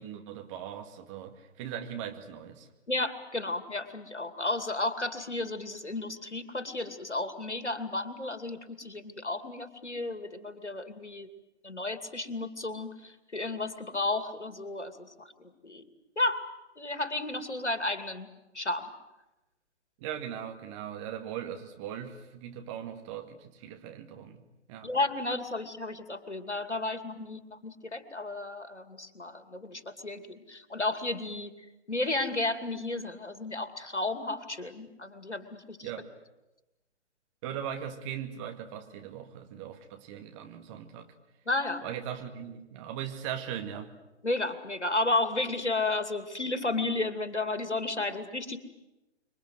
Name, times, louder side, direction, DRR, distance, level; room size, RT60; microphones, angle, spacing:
voice 1, 0.0-2.7 20.0-24.4 24.7-24.9 35.8-36.1 37.4-41.1 41.8-43.9, right 9 dB, 30° right, 5 dB, 2.2 m, -39 dB
voice 2, 2.9-11.3 11.6-15.8 16.2-16.5 16.8-18.3 18.5-18.9 24.8-31.5 31.9-35.9 41.5-41.8 44.2-48.6, left 2 dB, 80° left, 9 dB, 2.8 m, -33 dB
26.5 x 23.5 x 8.0 m, 1.0 s
figure-of-eight pair, 125°, 34 cm